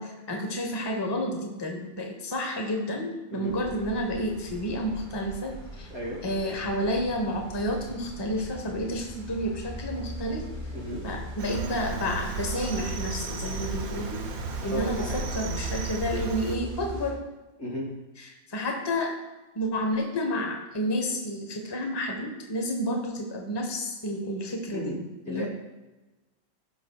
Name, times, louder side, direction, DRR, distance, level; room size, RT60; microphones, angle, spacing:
voice 1, 0.0-5.9 6.2-10.4 11.0-14.2 14.6-17.2 18.5-19.2 19.5-25.0 25.3-25.5, equal, 20° left, 2 dB, 1.0 m, -30 dB
sound 1, 3.5-17.1, equal, 35° right, 2.8 m, -40 dB
voice 2, 5.9-6.2 10.7-11.1 14.7-15.3 17.6-17.9 24.7-25.0 25.3-25.5, equal, 85° left, -5 dB, 3.7 m, -34 dB
Cricket, 11.4-16.6, right 5 dB, 80° right, 1.3 m, -34 dB
17.0 x 6.1 x 2.3 m, 1.1 s
omnidirectional pair, 1.5 m